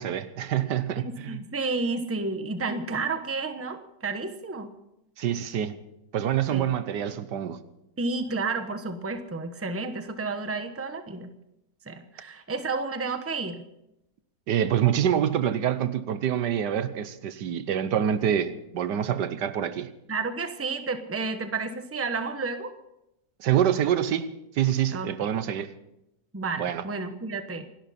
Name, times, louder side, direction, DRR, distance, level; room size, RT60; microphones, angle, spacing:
voice 1, 0.0-1.4 5.2-5.8 6.1-7.6 14.5-19.9 23.4-25.7 26.6-26.8, right 10 dB, 80° right, 1.5 m, -26 dB
voice 2, 1.0-4.7 6.5-6.6 8.0-11.3 11.9-13.6 20.1-22.7 24.9-25.1 26.3-27.6, right 3 dB, 10° right, 0.9 m, -31 dB
28.0 x 12.0 x 4.3 m
omnidirectional pair, 1.8 m